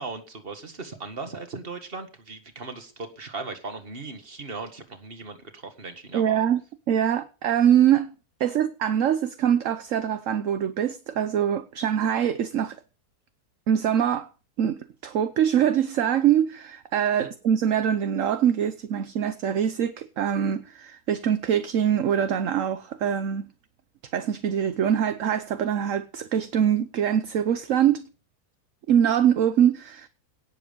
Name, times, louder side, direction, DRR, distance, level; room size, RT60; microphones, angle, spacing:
voice 1, 0.0-6.5 17.2-17.3, right 3 dB, 40° right, 2.0 m, -38 dB
voice 2, 6.1-6.6 6.9-8.1 8.4-12.8 13.7-14.3 14.6-23.5 24.1-28.1 28.9-30.1, right 9 dB, 60° right, 1.2 m, -23 dB
17.5 x 7.6 x 5.3 m
omnidirectional pair, 1.6 m